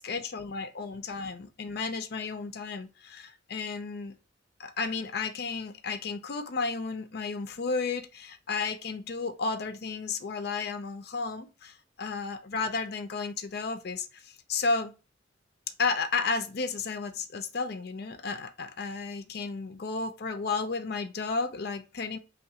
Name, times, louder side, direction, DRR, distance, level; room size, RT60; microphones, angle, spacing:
voice 1, 0.0-4.2 4.6-14.9 15.8-22.2, left 4 dB, 55° left, 0.5 m, -33 dB
5.5 x 2.5 x 2.8 m
head